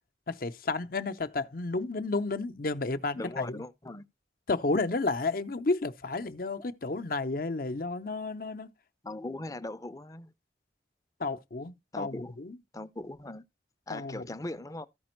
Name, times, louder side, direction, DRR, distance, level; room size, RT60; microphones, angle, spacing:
voice 1, 0.3-3.6 4.5-8.7 11.2-12.6 13.9-14.2, left 3 dB, 55° left, 0.7 m, -32 dB
voice 2, 3.1-4.0 9.0-10.3 11.9-12.4 12.7-13.4 13.9-14.9, left 2 dB, 20° left, 0.6 m, -39 dB
14.0 x 5.1 x 4.4 m
head